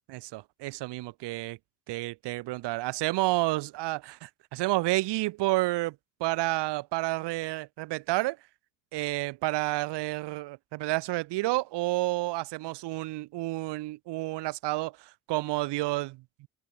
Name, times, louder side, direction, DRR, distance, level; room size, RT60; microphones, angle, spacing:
voice 1, 0.1-1.6 1.9-5.9 6.2-8.4 8.9-16.5, right 19 dB, 80° right, 6.4 m, -30 dB
open air
cardioid pair, 100°, 41 cm